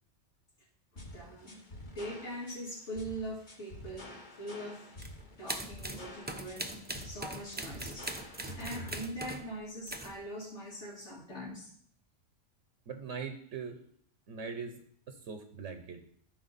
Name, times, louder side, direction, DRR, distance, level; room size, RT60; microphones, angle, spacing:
voice 1, 0.9-4.9 5.4-11.7, equal, 75° left, -7 dB, 2.6 m, -42 dB
sound 1, 1.0-9.0, left 1 dB, 40° left, 1.4 m, -48 dB
sound 2, 5.0-5.1 5.5-9.5 9.9-10.2, right 1 dB, 10° right, 0.5 m, -41 dB
voice 2, 12.9-13.8 14.3-14.8 15.1-16.0, right 5 dB, 80° right, 6 dB, 1.2 m, -41 dB
14.5 x 4.9 x 4.1 m, 0.63 s
omnidirectional pair, 1.2 m